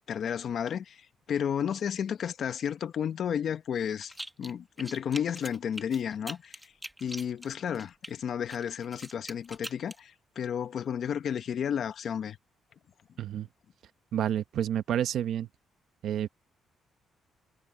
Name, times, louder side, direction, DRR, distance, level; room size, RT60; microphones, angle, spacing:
voice 1, 0.0-4.1 4.4-6.6 7.0-12.4, left 8 dB, 60° left, 1.3 m, -32 dB
sound 1, 4.1-4.5 4.8-8.1 8.5-10.0, right 1 dB, 5° right, 1.6 m, -42 dB
voice 2, 14.1-15.5 16.0-16.3, right 10 dB, 70° right, 1.1 m, -29 dB
cardioid pair, 90°, 0 cm